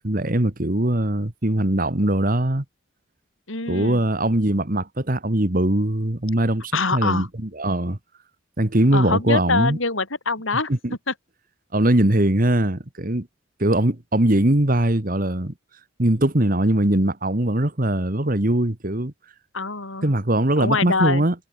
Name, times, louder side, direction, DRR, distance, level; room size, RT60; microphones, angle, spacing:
voice 1, 0.0-2.6 3.7-8.0 8.6-9.8 10.7-10.9 11.7-13.3 13.6-15.5 16.0-19.1 20.0-21.3, right 1 dB, 40° right, 1.6 m, -21 dB
voice 2, 3.5-4.0 6.7-7.3 8.9-10.7 11.1-11.2 19.5-20.1 20.6-21.2, left 3 dB, 70° left, 4.4 m, -24 dB
head